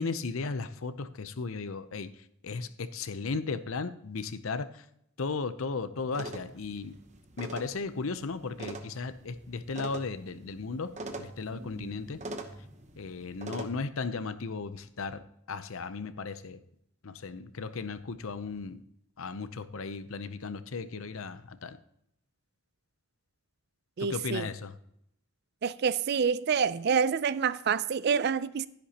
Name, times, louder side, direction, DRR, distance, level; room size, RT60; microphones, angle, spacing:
voice 1, 0.0-2.1 2.4-4.7 5.2-6.9 7.4-10.9 11.2-12.2 13.0-15.2 15.5-16.6 17.0-18.8 19.2-21.8 24.0-24.7, left 4 dB, 70° left, 0.6 m, -35 dB
sound 1, 6.1-13.7, right 2 dB, 30° right, 0.9 m, -44 dB
voice 2, 24.0-24.5 25.6-28.7, right 6 dB, 50° right, 0.4 m, -27 dB
11.5 x 10.5 x 2.9 m
head